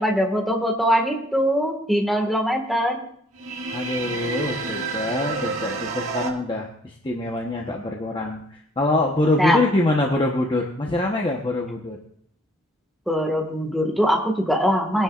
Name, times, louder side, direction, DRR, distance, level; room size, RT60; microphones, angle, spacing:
voice 1, 0.0-3.0 9.4-9.6 13.1-15.0, equal, ahead, 1 dB, 1.7 m, -22 dB
sound 1, 3.3-6.3, right 4 dB, 70° right, 2.0 m, -29 dB
voice 2, 3.7-12.0, left 2 dB, 25° left, 0 dB, 1.0 m, -24 dB
21.5 x 10.5 x 2.5 m, 0.65 s
head